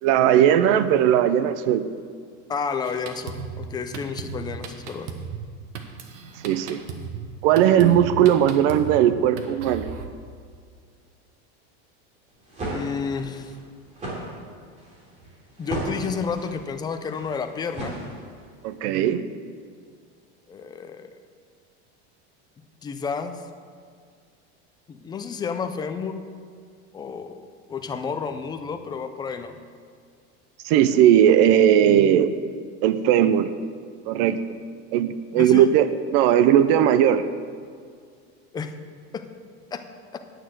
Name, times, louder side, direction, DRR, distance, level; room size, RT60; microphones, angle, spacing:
voice 1, 0.0-1.9 6.4-6.8 7.4-9.9 18.6-19.2 30.6-32.3 32.8-33.5 34.1-34.4 34.9-35.9 36.1-37.2, right 10 dB, 55° right, 13 dB, 0.6 m, -18 dB
voice 2, 2.5-5.1 12.7-13.5 15.6-18.0 20.5-21.2 22.8-23.4 24.9-26.2 26.9-27.4 27.7-29.6 35.3-35.7 38.5-38.7 39.1-39.2 39.7-39.8 40.1-40.2, left 5 dB, 15° left, 7 dB, 0.3 m, -31 dB
Drum kit, 2.8-10.1, right 6 dB, 90° right, 1.2 m, -37 dB
sound 1, 12.3-18.6, right 1 dB, 20° right, 2.8 m, -35 dB
9.4 x 6.4 x 7.7 m, 2.1 s
supercardioid pair, 150°, 35 cm